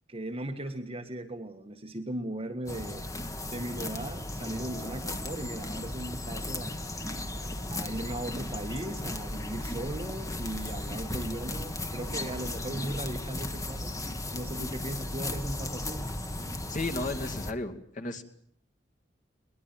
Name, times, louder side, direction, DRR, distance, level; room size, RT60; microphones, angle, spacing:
voice 1, 0.1-3.1 3.4-6.9 7.7-14.0 14.3-16.1, right 1 dB, 30° right, 5 dB, 1.6 m, -37 dB
sound 1, 2.7-17.5, left 1 dB, 20° left, 1.5 m, -36 dB
voice 2, 16.7-18.2, left 2 dB, 45° left, 4 dB, 2.5 m, -34 dB
22.0 x 21.0 x 9.0 m, 0.63 s
head